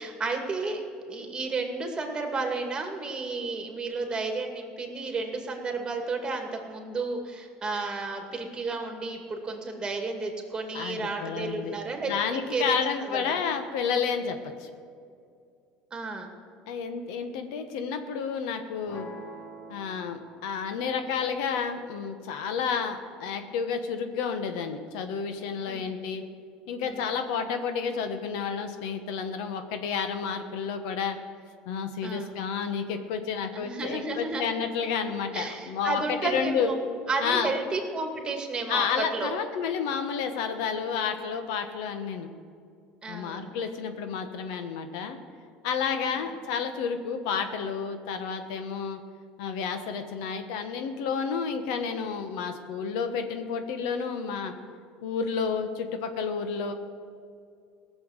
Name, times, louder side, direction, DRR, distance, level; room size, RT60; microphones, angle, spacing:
voice 1, 0.0-13.4 15.9-16.3 25.7-25.9 26.8-27.1 32.0-32.3 33.5-34.6 35.3-36.7 37.1-38.9 39.1-39.3 43.0-43.6, right 3 dB, 25° right, 3 dB, 2.3 m, -32 dB
voice 2, 10.7-11.8 12.1-14.7 16.7-19.1 19.7-26.2 26.7-31.2 31.7-36.7 37.2-37.5 38.7-42.3 43.1-45.2 45.6-49.0 49.4-54.5 55.0-56.7, left 6 dB, 80° left, 8 dB, 1.2 m, -30 dB
sound 1, 18.9-24.9, right 1 dB, 45° left, 1.9 m, -50 dB
17.0 x 7.0 x 8.1 m, 2.3 s
supercardioid pair, 100°, 4 cm